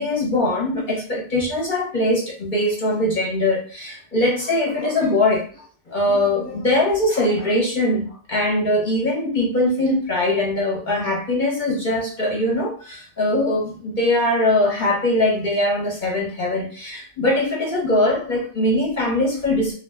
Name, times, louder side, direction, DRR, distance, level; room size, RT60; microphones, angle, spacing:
voice 1, 0.0-5.4 5.9-19.7, left 1 dB, 45° left, -3 dB, 0.8 m, -21 dB
2.3 x 2.1 x 3.3 m, 0.40 s
omnidirectional pair, 1.3 m